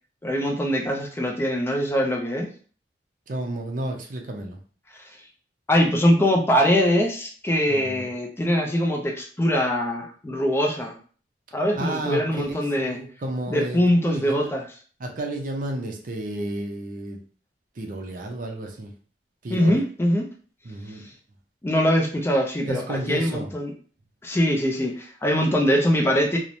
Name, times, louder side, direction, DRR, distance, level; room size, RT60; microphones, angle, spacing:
voice 1, 0.2-2.5 5.7-11.0 11.5-13.0 13.5-14.6 19.5-20.3 20.9-21.0 21.6-23.7 24.2-26.4, equal, 15° left, 1 dB, 0.3 m, -22 dB
voice 2, 3.3-4.6 7.7-8.1 11.7-14.6 15.0-17.2 17.8-18.9 19.4-19.8 20.6-21.0 22.6-23.5, right 1 dB, 50° right, 2 dB, 0.5 m, -32 dB
3.0 x 2.0 x 2.5 m, 0.43 s
head